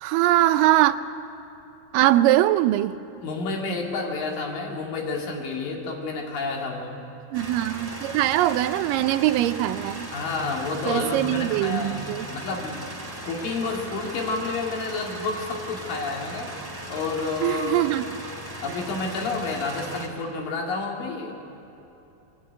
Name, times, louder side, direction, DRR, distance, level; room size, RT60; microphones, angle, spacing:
voice 1, 0.0-1.0 1.9-2.9 7.3-10.1 10.9-12.3 17.4-18.1, right 14 dB, 80° right, 12 dB, 2.2 m, -21 dB
voice 2, 3.2-7.0 10.1-12.8 13.3-16.5 16.9-17.9 18.6-21.3, left 3 dB, 75° left, 0 dB, 3.9 m, -30 dB
sound 1, 7.3-20.1, right 1 dB, 10° right, 1.8 m, -38 dB
24.5 x 11.5 x 9.7 m, 3.0 s
omnidirectional pair, 4.0 m